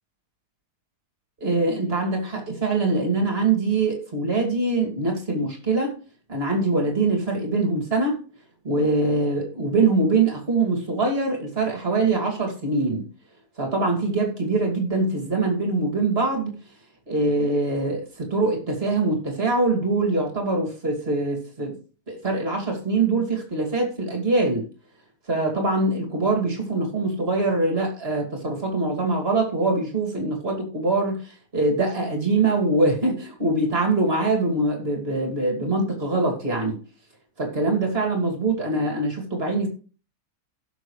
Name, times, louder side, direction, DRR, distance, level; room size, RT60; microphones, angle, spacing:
voice 1, 1.4-5.9 6.3-8.2 8.6-13.1 13.6-16.6 17.1-21.7 22.1-24.7 25.3-36.8 37.4-39.7, right 2 dB, 25° right, 1 dB, 2.8 m, -23 dB
16.0 x 6.9 x 3.3 m, 0.38 s
omnidirectional pair, 2.3 m